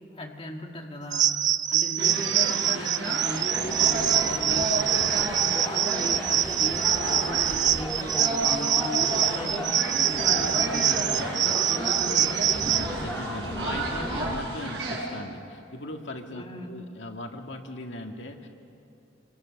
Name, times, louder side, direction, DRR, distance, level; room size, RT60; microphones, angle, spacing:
voice 1, 0.1-1.4 1.7-5.3 5.6-11.0 11.4-12.5 16.3-16.7, left 1 dB, 30° left, 1 dB, 2.0 m, -38 dB
sound 1, 1.1-12.9, right 10 dB, 40° right, 0.5 m, -25 dB
sound 2, 2.0-15.1, right 2 dB, 60° right, 6.4 m, -33 dB
sound 3, 3.4-14.4, equal, 10° left, 1.9 m, -36 dB
voice 2, 11.1-11.5 12.7-18.5, left 1 dB, 80° left, 3 dB, 1.9 m, -38 dB
29.0 x 24.5 x 6.5 m, 2.6 s
head